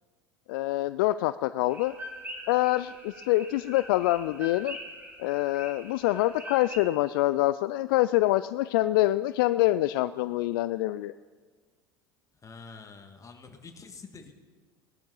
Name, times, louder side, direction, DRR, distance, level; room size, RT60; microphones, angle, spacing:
voice 1, 0.5-1.9 2.5-4.8 5.2-11.1, left 16 dB, 65° left, 14 dB, 0.4 m, -25 dB
sound 1, 1.7-6.8, equal, 15° right, 3.4 m, -43 dB
voice 2, 12.3-14.4, left 4 dB, 25° left, 5 dB, 2.0 m, -47 dB
18.0 x 11.5 x 5.4 m, 1.5 s
hypercardioid pair, 70°, 12 cm